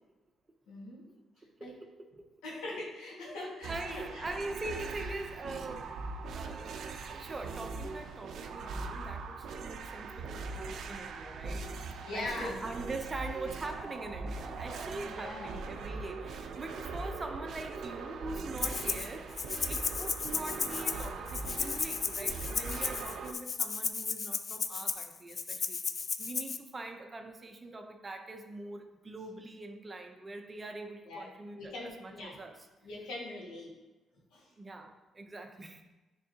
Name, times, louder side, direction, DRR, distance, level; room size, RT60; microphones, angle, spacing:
voice 1, 0.7-1.1 1.6-1.7 2.4-4.2 5.5-5.6 12.0-12.6 15.1-15.6 31.1-31.3 31.5-32.4 32.8-33.7 34.3-34.5, left 2 dB, 85° left, -4 dB, 1.8 m, -41 dB
voice 2, 1.6-2.3 3.4-6.7 7.1-11.6 12.1-25.8 26.2-32.5 34.6-35.8, right 2 dB, 30° right, 5 dB, 0.7 m, -43 dB
sound 1, 3.6-23.3, right 4 dB, 70° right, 0.5 m, -41 dB
Rattle (instrument), 18.6-19.1 19.4-26.6, left 5 dB, 45° left, 0.4 m, -34 dB
9.0 x 3.8 x 2.9 m, 1.1 s
cardioid pair, 90°, 0 cm